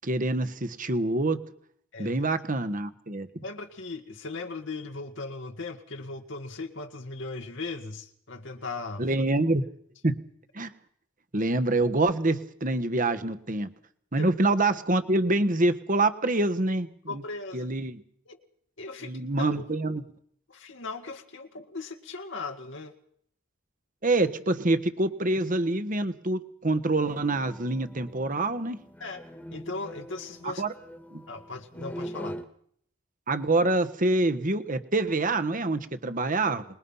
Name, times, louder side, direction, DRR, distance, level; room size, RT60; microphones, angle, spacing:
voice 1, 0.0-1.4 2.0-3.3 9.0-9.6 10.0-10.1 10.5-10.7 11.3-13.7 14.1-17.2 17.5-18.0 19.0-20.0 24.0-28.8 30.4-30.7 31.1-31.2 33.3-36.6, right 2 dB, 40° right, 10 dB, 1.4 m, -26 dB
voice 2, 1.9-2.2 3.4-9.1 14.2-14.3 17.1-17.7 18.3-18.4 18.8-19.1 19.4-19.7 20.5-22.9 29.0-29.2 29.5-30.7 31.3-32.4, left 3 dB, 65° left, 4 dB, 1.9 m, -38 dB
sound 1, 27.0-32.4, equal, 10° left, 1.8 m, -42 dB
25.0 x 21.0 x 5.7 m, 0.64 s
head